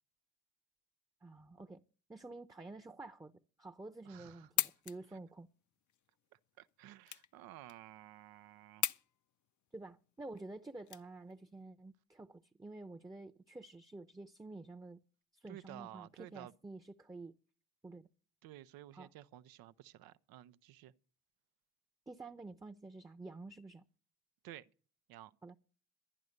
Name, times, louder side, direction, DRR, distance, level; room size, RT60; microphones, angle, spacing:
voice 1, 1.2-1.8 2.1-3.3 3.6-5.5 9.7-15.0 15.3-17.3 17.8-18.1 18.9-19.1 22.1-23.8 25.4-25.6, right 2 dB, 10° right, 0.8 m, -50 dB
voice 2, 4.0-4.5 6.6-8.8 15.5-16.5 18.4-20.9 24.4-24.7 25.1-25.3, right 14 dB, 85° right, 0.7 m, -53 dB
sound 1, 4.2-11.6, left 11 dB, 55° left, 0.7 m, -41 dB
11.0 x 11.0 x 6.5 m
supercardioid pair, 65°, 35 cm